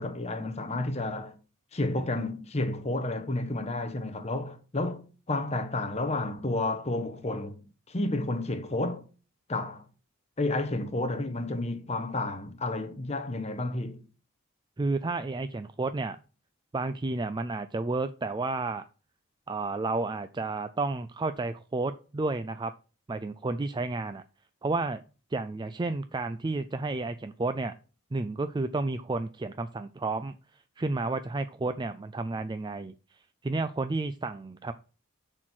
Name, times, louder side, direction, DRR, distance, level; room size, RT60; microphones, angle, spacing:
voice 1, 0.0-1.3 1.7-7.6 7.9-9.1 9.5-9.8 10.4-14.0, left 2 dB, 30° left, 1.1 m, -31 dB
voice 2, 14.8-16.2 16.7-18.8 19.5-22.7 23.1-24.2 24.6-25.0 25.3-27.7 28.1-34.7, right 3 dB, 20° right, 0.3 m, -31 dB
10.0 x 4.5 x 6.1 m
head